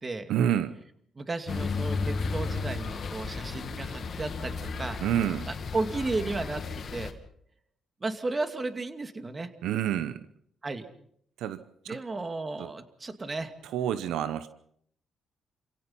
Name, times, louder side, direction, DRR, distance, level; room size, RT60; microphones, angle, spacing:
voice 1, 0.3-0.8 5.0-5.5 9.6-10.2 11.4-11.6 11.9-12.0 12.6-12.7 13.6-14.5, right 10 dB, 85° right, 13 dB, 0.9 m, -28 dB
voice 2, 1.2-5.0 5.5-6.6 6.9-7.1 8.0-9.5 10.6-10.9 11.9-13.5, right 3 dB, 30° right, 9 dB, 2.4 m, -34 dB
sound 1, 1.5-7.1, left 4 dB, 55° left, 2.6 m, -34 dB
28.5 x 17.0 x 5.7 m, 0.64 s
cardioid pair, 70°, 0 cm